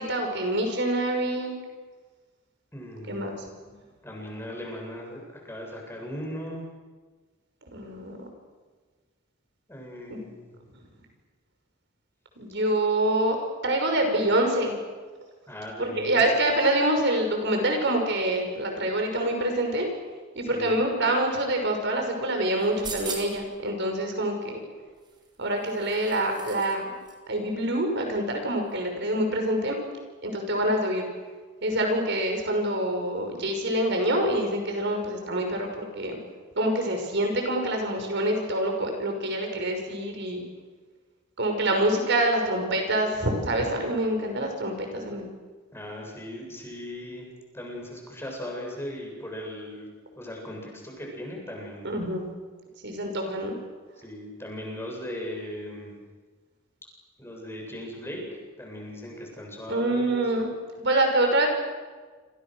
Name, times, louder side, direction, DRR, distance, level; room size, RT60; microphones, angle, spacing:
voice 1, 0.0-1.5 3.1-3.4 3.7-3.8 7.7-8.3 10.1-10.2 12.4-13.4 13.6-14.8 15.8-19.9 20.3-24.6 25.4-27.0 27.3-29.7 30.2-31.0 31.6-36.2 36.6-40.4 41.4-45.3 51.8-52.3 52.8-53.6 59.7-60.5 60.8-61.5, right 1 dB, 60° right, 4 dB, 6.1 m, -26 dB
voice 2, 2.7-3.3 4.0-6.6 9.7-10.5 15.5-16.2 20.5-20.8 45.7-47.3 47.5-49.9 50.2-51.9 54.0-56.0 57.2-58.2 58.6-60.2, left 1 dB, 10° left, 0 dB, 7.7 m, -38 dB
sound 1, 22.6-23.5 25.0-26.8 27.0-27.1, right 4 dB, 20° right, 4.5 m, -39 dB
28.5 x 28.0 x 6.5 m, 1.4 s
head